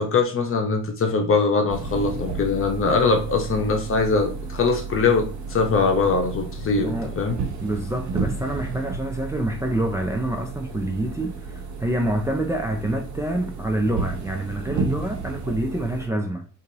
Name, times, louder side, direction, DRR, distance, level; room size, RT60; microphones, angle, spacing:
voice 1, 0.0-7.4, left 4 dB, 45° left, 1.0 m, -22 dB
sound 1, 1.7-16.1, right 4 dB, 70° right, 0.9 m, -32 dB
voice 2, 6.8-7.2 7.6-16.5, right 1 dB, 10° right, 0.5 m, -27 dB
2.8 x 2.7 x 3.9 m
cardioid pair, 90°, 30 cm